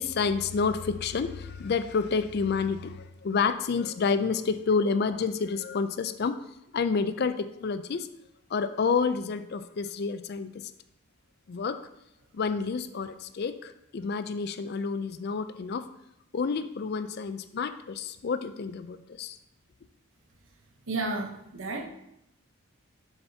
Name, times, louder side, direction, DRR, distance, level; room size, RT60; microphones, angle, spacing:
voice 1, 0.0-6.4 6.7-8.1 8.5-10.6 11.5-11.8 12.3-15.9 16.3-19.4, left 5 dB, 45° left, 11 dB, 0.4 m, -29 dB
voice 2, 20.9-21.8, right 2 dB, 65° right, 4 dB, 0.9 m, -32 dB
7.1 x 6.7 x 2.8 m, 0.80 s
head